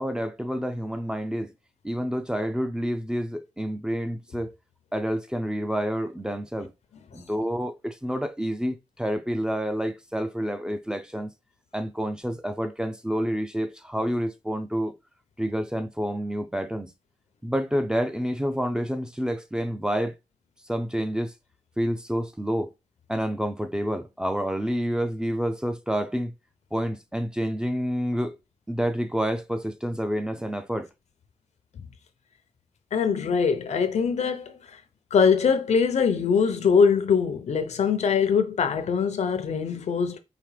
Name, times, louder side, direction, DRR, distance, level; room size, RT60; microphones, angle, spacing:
voice 1, 0.0-1.5 1.8-4.5 4.9-6.7 7.1-11.3 11.7-14.9 15.4-16.9 17.4-20.1 20.7-21.3 21.8-22.7 23.1-26.3 26.7-28.4 28.7-30.9, equal, 5° right, 0.5 m, -28 dB
voice 2, 32.9-34.6 35.1-40.2, left 6 dB, 80° left, 0.7 m, -22 dB
5.0 x 2.9 x 3.3 m
wide cardioid pair, 105°, 11 cm